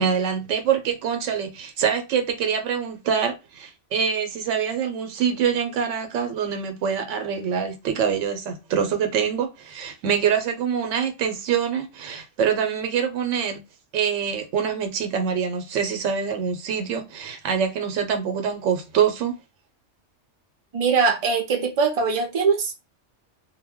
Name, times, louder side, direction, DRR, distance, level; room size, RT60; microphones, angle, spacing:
voice 1, 0.0-13.6 13.9-19.3, right 7 dB, 90° right, 0.9 m, -25 dB
voice 2, 20.7-22.7, right 5 dB, 50° right, 0.4 m, -21 dB
2.2 x 2.1 x 3.4 m
omnidirectional pair, 1.2 m